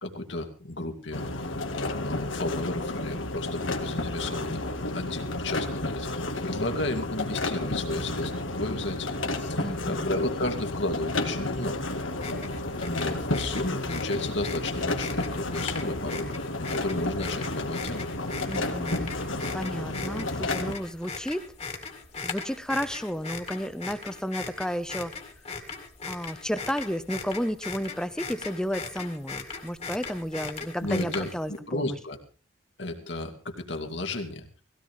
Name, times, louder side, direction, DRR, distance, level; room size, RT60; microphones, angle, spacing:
voice 1, 0.0-11.9 12.8-18.1 30.8-32.2 32.8-34.5, left 2 dB, 65° left, 4 dB, 2.4 m, -33 dB
sound 1, 1.1-20.8, left 2 dB, 85° left, 2.1 m, -32 dB
voice 2, 9.5-10.1 18.5-19.1 19.5-21.4 22.2-25.1 26.1-32.0, equal, 5° left, 11 dB, 0.9 m, -32 dB
sound 2, 12.1-31.6, left 4 dB, 30° left, 2.2 m, -39 dB
18.5 x 17.0 x 3.6 m, 0.36 s
head